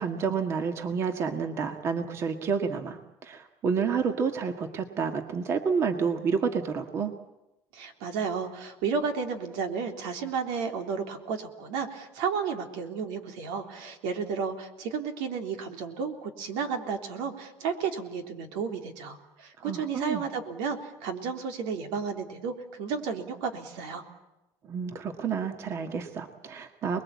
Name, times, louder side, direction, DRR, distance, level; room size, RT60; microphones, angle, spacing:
voice 1, 0.0-7.2 19.6-20.2 24.7-27.0, right 6 dB, 35° right, 6 dB, 1.8 m, -29 dB
voice 2, 7.7-24.0, right 6 dB, 85° right, 5 dB, 3.6 m, -32 dB
29.0 x 21.5 x 8.6 m, 0.96 s
cardioid pair, 155°, 8 cm